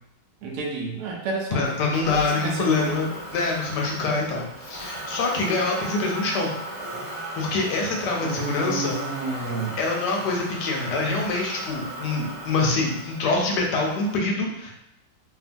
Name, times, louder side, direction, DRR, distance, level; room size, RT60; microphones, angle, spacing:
voice 1, 0.4-1.7 2.1-3.0 8.2-9.8, right 4 dB, 75° right, -1 dB, 1.1 m, -30 dB
voice 2, 1.5-6.5 7.4-9.0 9.8-14.7, left 3 dB, 75° left, -1 dB, 1.1 m, -25 dB
Motor vehicle (road), 1.6-14.2, right 1 dB, 45° right, 0.5 m, -37 dB
2.8 x 2.5 x 2.5 m, 0.83 s
omnidirectional pair, 1.9 m